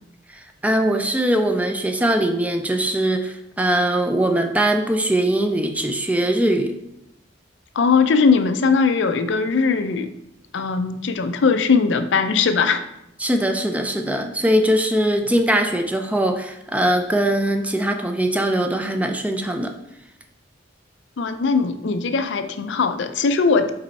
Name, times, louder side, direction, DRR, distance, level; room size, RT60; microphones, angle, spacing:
voice 1, 0.3-6.8 13.2-19.7, right 1 dB, 10° right, 6 dB, 0.4 m, -21 dB
voice 2, 7.8-10.1 10.5-12.8 21.2-23.7, left 5 dB, 65° left, 9 dB, 0.4 m, -19 dB
5.3 x 4.3 x 4.1 m, 0.83 s
head